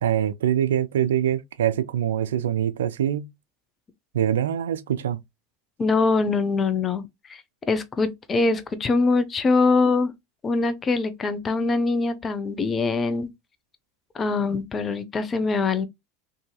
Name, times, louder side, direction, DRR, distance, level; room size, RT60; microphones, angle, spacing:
voice 1, 0.0-3.3 4.1-5.2, right 10 dB, 80° right, 0.3 m, -24 dB
voice 2, 5.8-7.4 7.7-10.1 10.4-13.3 14.1-15.9, left 3 dB, 30° left, 0.5 m, -23 dB
2.7 x 2.6 x 2.2 m
hypercardioid pair, 85°, 0 cm